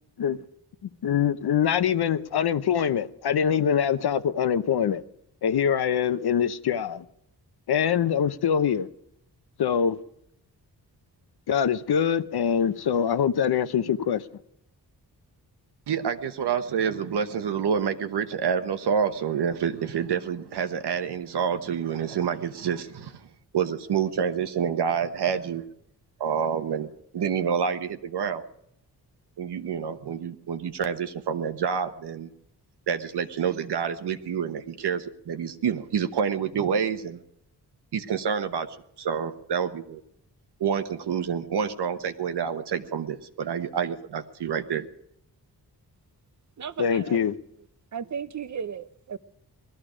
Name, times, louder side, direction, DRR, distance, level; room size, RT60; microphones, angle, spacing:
voice 1, 1.0-5.0 5.4-7.0 7.7-8.9 9.6-10.0 11.5-14.2 46.8-47.3, left 8 dB, 75° left, 0.8 m, -24 dB
voice 2, 15.9-23.3 23.5-25.7 26.2-28.5 29.4-32.3 32.9-37.2 37.9-38.7 39.0-40.0 40.6-44.8, right 7 dB, 85° right, 1.1 m, -28 dB
voice 3, 46.6-47.2 47.9-49.2, right 7 dB, 45° right, 0.7 m, -35 dB
20.0 x 13.0 x 5.0 m
wide cardioid pair, 115°, 39 cm